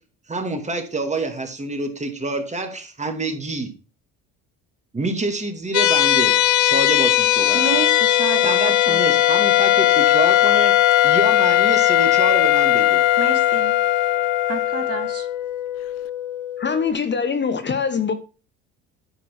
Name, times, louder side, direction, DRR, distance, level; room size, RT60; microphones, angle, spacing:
voice 1, 0.3-3.7 4.9-7.6 8.4-10.7 11.0-13.0, right 2 dB, 20° right, 2.3 m, -27 dB
sound 1, 5.7-16.9, left 12 dB, 60° left, 1.0 m, -21 dB
Wind instrument woodwind instrument, 7.4-15.2, left 15 dB, 80° left, 0.5 m, -20 dB
voice 2, 7.5-9.2 13.2-13.8 14.5-15.3, right 6 dB, 45° right, 1.5 m, -30 dB
voice 3, 16.6-18.1, left 6 dB, 30° left, 1.0 m, -23 dB
10.0 x 4.5 x 5.9 m
supercardioid pair, 80°, 34 cm